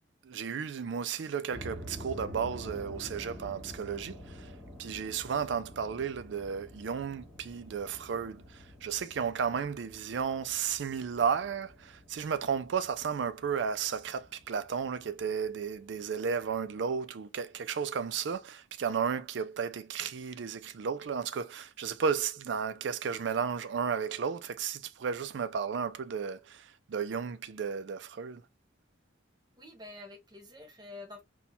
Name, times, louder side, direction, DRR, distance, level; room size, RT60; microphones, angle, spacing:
voice 1, 0.2-4.5 4.8-28.4, right 6 dB, 70° right, 0.4 m, -33 dB
sound 1, 1.5-16.7, equal, ahead, 2.0 m, -49 dB
voice 2, 29.6-31.2, left 2 dB, 20° right, 0.7 m, -47 dB
4.2 x 2.2 x 2.7 m
head